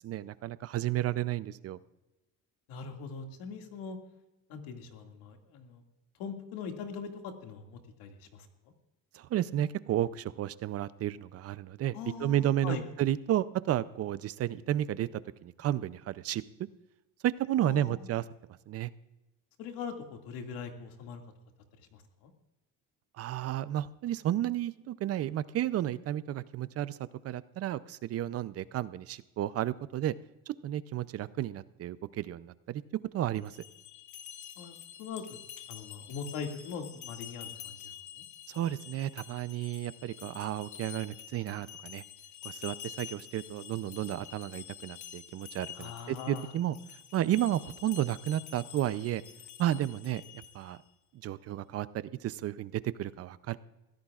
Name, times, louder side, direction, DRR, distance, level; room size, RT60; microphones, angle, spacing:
voice 1, 0.0-1.8 9.1-16.4 17.2-18.2 18.7-18.9 23.2-27.0 27.2-30.1 30.5-32.8 33.1-33.5 38.5-42.0 42.4-46.8 47.1-49.2 49.6-50.2 50.5-50.8 51.2-53.6, right 12 dB, 45° right, 16 dB, 0.5 m, -32 dB
voice 2, 2.7-4.0 4.5-5.8 6.2-8.5 11.9-12.8 17.6-18.1 19.6-21.2 21.8-22.3 34.6-35.4 35.7-38.2 45.8-46.5, left 6 dB, 90° left, 4 dB, 2.2 m, -41 dB
sound 1, 33.3-50.8, left 10 dB, 55° left, 1.1 m, -48 dB
22.5 x 15.5 x 2.4 m, 0.98 s
cardioid pair, 150°, 35 cm